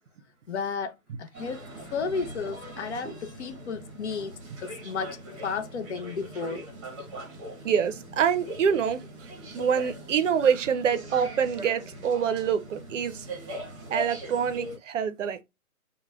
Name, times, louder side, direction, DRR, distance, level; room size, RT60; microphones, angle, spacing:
voice 1, 0.5-0.9 1.2-1.6 1.9-4.3 4.6-6.7, left 5 dB, 55° left, 0.5 m, -33 dB
sound 1, 1.3-14.8, right 1 dB, 20° right, 0.8 m, -41 dB
voice 2, 7.6-9.1 9.5-13.3 13.9-15.4, right 7 dB, 60° right, 0.5 m, -26 dB
3.1 x 2.1 x 2.3 m
hypercardioid pair, 150°, 43 cm